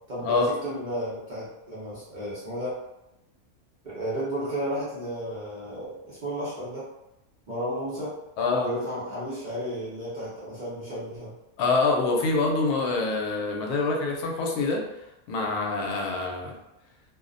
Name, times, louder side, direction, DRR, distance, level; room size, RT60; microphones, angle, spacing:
voice 1, 0.1-2.8 3.8-6.9 7.5-8.2 8.6-11.3, equal, 45° right, -10 dB, 0.6 m, -33 dB
voice 2, 8.4-8.7 11.6-14.8 15.3-16.6, left 3 dB, 85° left, 0 dB, 1.1 m, -25 dB
2.6 x 2.0 x 2.5 m, 0.91 s
omnidirectional pair, 1.6 m